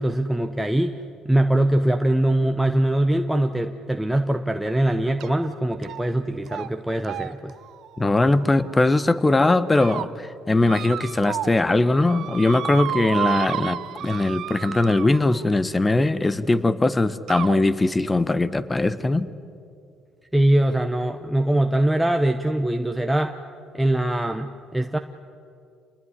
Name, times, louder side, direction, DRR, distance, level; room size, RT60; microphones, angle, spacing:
voice 1, 0.0-7.5 20.3-23.4 23.7-25.0, right 1 dB, 5° right, 5 dB, 1.0 m, -22 dB
sound 1, 5.2-5.5 5.8-6.2 6.5-6.7 7.0-9.0 9.5-10.1 10.6-11.6 11.9-15.5 16.5-16.6 17.3-17.6, right 12 dB, 70° right, 0.9 m, -32 dB
voice 2, 8.0-19.3, left 2 dB, 20° left, 15 dB, 1.2 m, -20 dB
28.0 x 20.0 x 9.9 m, 2.5 s
cardioid pair, 95°, 0 cm